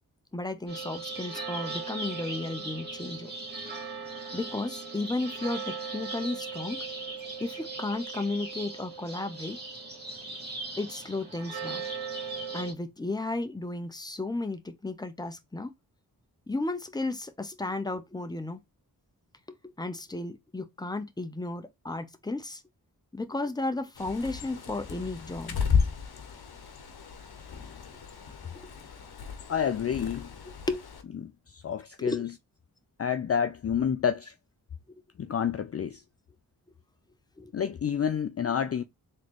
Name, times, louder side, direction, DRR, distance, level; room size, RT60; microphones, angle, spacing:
voice 1, 0.3-3.3 4.3-6.8 7.4-9.6 10.8-11.8 12.5-15.7 16.5-18.6 19.5-22.6 23.1-25.6 28.5-28.6 30.7-30.8 32.0-32.2 37.4-37.5, left 2 dB, 10° left, 0.8 m, -34 dB
sound 1, 0.7-12.7, right 4 dB, 25° right, 2.1 m, -38 dB
Bird, 23.9-31.0, left 6 dB, 80° left, 0.9 m, -33 dB
voice 2, 29.5-30.3 31.0-32.4 33.0-34.3 35.2-36.0 37.5-38.8, left 8 dB, 40° left, 0.4 m, -29 dB
3.8 x 3.2 x 3.1 m
cardioid pair, 55°, 38 cm